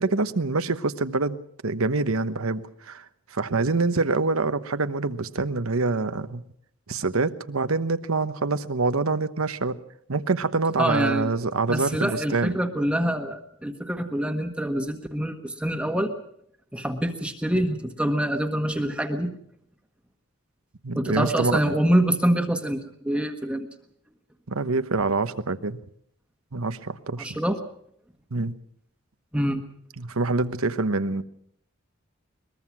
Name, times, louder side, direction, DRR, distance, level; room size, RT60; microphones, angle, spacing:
voice 1, 0.0-1.4 1.6-3.0 3.3-6.4 6.9-9.8 10.1-12.5 20.8-21.8 24.5-25.8 26.5-27.4 28.3-28.5 30.0-31.2, right 3 dB, 90° right, 11 dB, 1.1 m, -25 dB
voice 2, 10.8-11.3 11.7-16.1 16.7-19.3 20.9-23.7 27.2-27.6 29.3-29.6, right 1 dB, 5° right, 5 dB, 1.3 m, -25 dB
22.5 x 21.0 x 6.1 m, 0.69 s
head